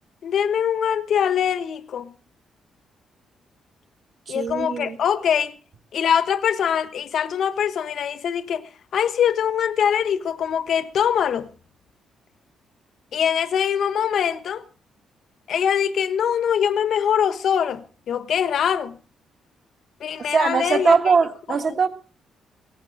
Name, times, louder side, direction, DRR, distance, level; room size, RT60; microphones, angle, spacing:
voice 1, 0.2-2.1 4.3-5.5 5.9-11.5 13.1-14.6 15.5-19.0 20.0-21.0 21.5-21.8, left 8 dB, 55° left, 1.1 m, -23 dB
voice 2, 4.3-5.0 20.3-21.9, right 5 dB, 35° right, 1.5 m, -21 dB
17.5 x 15.0 x 3.7 m
cardioid pair, 175°, 0 cm